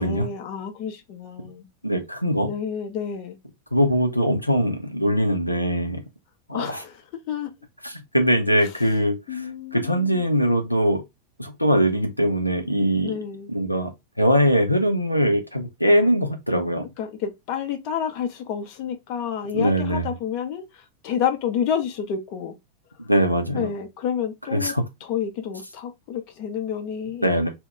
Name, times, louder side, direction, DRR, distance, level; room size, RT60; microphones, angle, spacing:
voice 1, 0.0-1.7 2.4-3.4 6.5-7.0 7.3-7.5 9.3-10.2 13.0-13.5 15.8-16.1 17.0-22.5 23.5-24.7 25.0-27.5, left 8 dB, 45° left, 0.6 m, -29 dB
voice 2, 1.8-2.5 3.7-6.0 6.5-6.8 7.8-9.4 9.7-11.0 11.4-13.1 13.5-13.9 14.2-16.9 19.5-20.0 23.0-23.7 24.5-24.8 27.2-27.5, equal, 90° left, 0.5 m, -21 dB
2.2 x 2.1 x 3.7 m
figure-of-eight pair, 90°, 0 cm